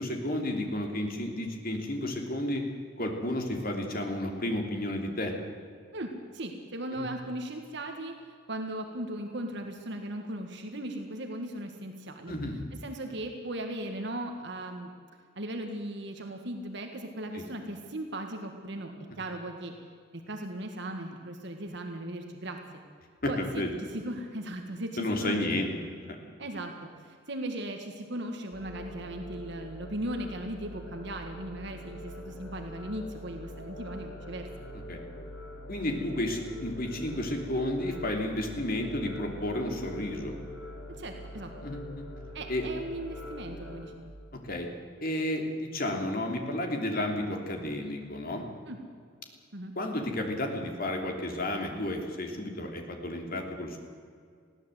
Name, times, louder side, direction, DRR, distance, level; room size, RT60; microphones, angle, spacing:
voice 1, 0.0-2.6 3.0-5.3 7.0-7.1 12.3-12.6 17.3-17.4 23.2-23.7 25.0-25.7 26.1-26.2 34.9-35.0 35.7-40.4 41.6-42.0 42.5-42.6 44.4-44.7 45.0-48.4 49.7-53.8, left 1 dB, 50° left, 3 dB, 3.1 m, -32 dB
voice 2, 5.9-8.1 8.5-12.4 12.8-14.9 15.4-19.7 20.1-22.6 23.3-23.6 23.9-25.6 26.4-26.7 27.0-34.5 40.9-41.5 42.3-43.9 48.7-48.8 49.5-49.7, right 1 dB, 60° right, 4 dB, 1.8 m, -37 dB
sound 1, 28.5-43.9, equal, 75° left, 6.0 m, -44 dB
21.0 x 16.0 x 8.0 m, 2.1 s
head